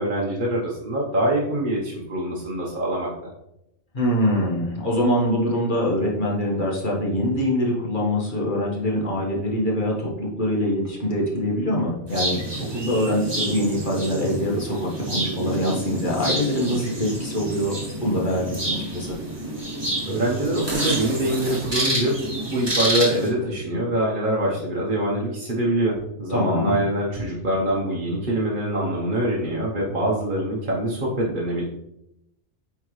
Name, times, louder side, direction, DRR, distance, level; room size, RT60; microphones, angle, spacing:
voice 1, 0.0-3.1 20.1-22.1 22.5-31.6, right 1 dB, 40° right, -4 dB, 1.0 m, -24 dB
voice 2, 3.9-19.2 26.3-26.8, equal, 40° left, -3 dB, 1.5 m, -24 dB
sound 1, 12.1-23.3, right 1 dB, 20° right, 1.5 m, -29 dB
8.8 x 3.6 x 3.1 m, 0.83 s
omnidirectional pair, 1.4 m